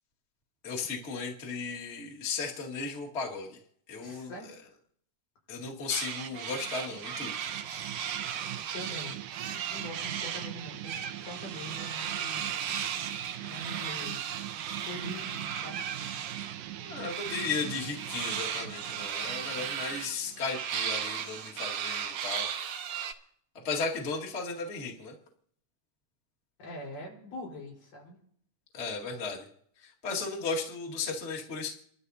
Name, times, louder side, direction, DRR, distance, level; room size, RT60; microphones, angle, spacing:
voice 1, 0.6-3.6 3.9-4.3 5.5-7.3 16.8-22.5 23.6-25.1 28.7-29.5 29.8-31.7, left 4 dB, 25° left, -2 dB, 1.6 m, -35 dB
voice 2, 4.0-4.5 8.7-9.2 9.7-12.5 13.4-14.2 14.8-15.8 18.6-18.7 26.6-28.2, equal, 75° left, -2 dB, 6.1 m, -43 dB
sound 1, 5.9-10.5 10.8-16.6 17.0-23.1, right 8 dB, 70° right, 1.5 m, -36 dB
sound 2, 6.3-21.7, right 12 dB, 90° right, 2.5 m, -43 dB
29.5 x 12.5 x 2.8 m, 0.66 s
omnidirectional pair, 3.8 m